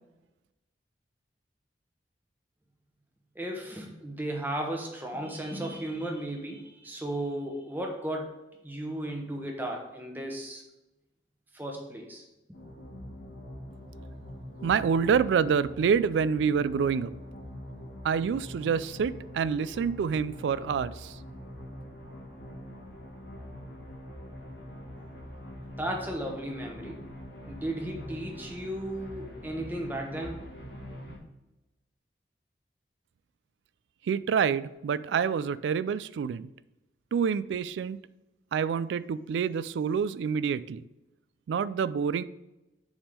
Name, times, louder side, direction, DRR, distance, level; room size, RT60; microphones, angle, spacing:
voice 1, 3.3-10.6 11.5-12.2 25.8-27.0 27.5-30.4, right 1 dB, 10° right, 1 dB, 0.9 m, -35 dB
sound 1, 12.5-31.2, left 1 dB, 90° left, 1.6 m, -44 dB
voice 2, 14.6-17.1 18.0-21.1 34.1-36.5 37.1-38.0 38.5-40.8 41.5-42.2, right 6 dB, 90° right, 16 dB, 0.3 m, -27 dB
7.1 x 3.6 x 5.1 m, 0.98 s
head